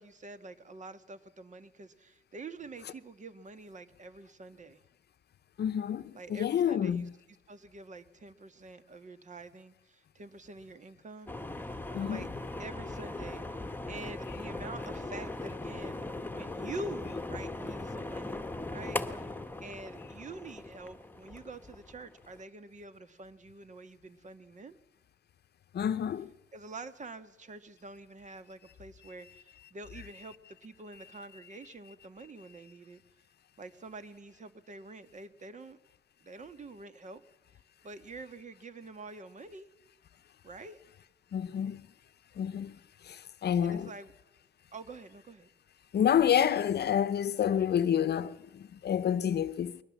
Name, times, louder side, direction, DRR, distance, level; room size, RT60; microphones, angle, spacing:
voice 1, 0.0-4.8 6.1-7.1 7.5-11.3 11.7-12.3 12.6-19.3 19.6-24.8 26.5-33.0 33.6-35.8 36.2-37.2 37.8-39.7 40.4-40.8 43.6-44.1 44.7-45.5, right 3 dB, 40° right, 1.7 m, -46 dB
voice 2, 5.6-7.1 11.9-12.3 25.7-26.3 29.9-30.3 30.9-31.0 31.6-31.7 41.3-41.9 42.4-42.8 43.0-43.9 45.9-49.7, left 9 dB, 55° left, 0.9 m, -29 dB
sound 1, 11.3-22.4, left 2 dB, 10° left, 1.5 m, -39 dB
22.5 x 19.0 x 7.3 m
cardioid pair, 90°, 20 cm